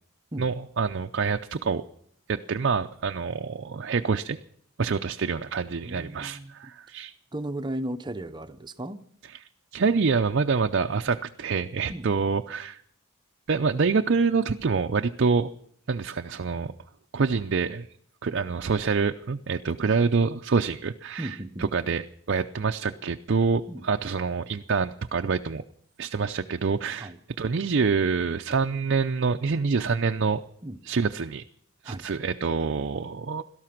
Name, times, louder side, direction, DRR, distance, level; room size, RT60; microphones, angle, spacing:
voice 1, 0.4-1.8 2.3-4.4 4.8-7.1 9.7-12.8 13.5-15.5 15.9-16.7 17.1-17.9 18.2-25.6 26.0-27.1 27.4-30.4 30.8-31.4 31.8-33.4, right 5 dB, 55° right, 6 dB, 0.5 m, -26 dB
voice 2, 5.8-6.5 7.3-9.0 11.9-12.1 21.2-21.7 23.7-23.9 27.0-27.2 30.6-30.8 31.8-32.1, right 1 dB, 20° right, 10 dB, 0.7 m, -35 dB
17.5 x 13.0 x 5.9 m, 0.67 s
head